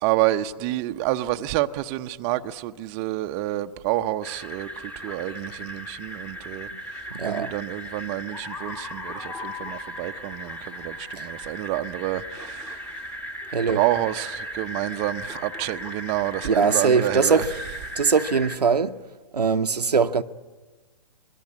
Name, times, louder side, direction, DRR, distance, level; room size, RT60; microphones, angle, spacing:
voice 1, 0.0-13.2 13.7-17.4 17.9-18.0, right 15 dB, 30° right, 0.8 m, -28 dB
sound 1, 4.2-18.6, equal, 5° left, 1.5 m, -37 dB
voice 2, 7.1-7.5 11.2-11.3 13.5-13.8 16.4-17.5 18.0-19.0 19.3-20.2, right 5 dB, 85° right, 0.9 m, -21 dB
sound 2, 8.3-12.1, left 6 dB, 65° left, 6.2 m, -41 dB
26.0 x 22.0 x 8.5 m
figure-of-eight pair, 125°, 20 cm